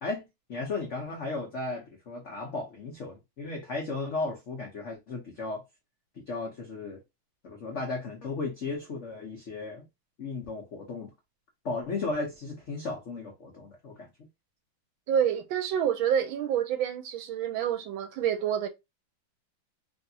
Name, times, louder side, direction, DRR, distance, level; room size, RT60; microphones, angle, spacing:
voice 1, 0.0-5.6 6.2-7.0 7.4-9.8 10.2-11.1 11.6-14.1, left 3 dB, 80° left, 0.6 m, -35 dB
voice 2, 15.1-18.7, right 9 dB, 75° right, 1.3 m, -28 dB
3.3 x 2.7 x 2.7 m
omnidirectional pair, 2.3 m